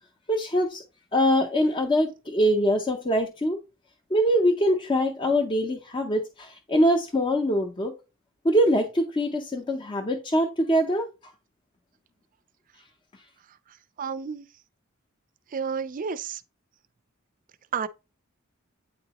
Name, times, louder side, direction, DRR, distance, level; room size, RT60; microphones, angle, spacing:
voice 1, 0.3-0.8 1.1-3.6 4.1-7.9 8.4-11.1, equal, 25° left, 0.6 m, -23 dB
voice 2, 14.0-14.5 15.5-16.4 17.7-17.9, right 6 dB, 40° right, 0.4 m, -30 dB
8.8 x 3.9 x 2.9 m
head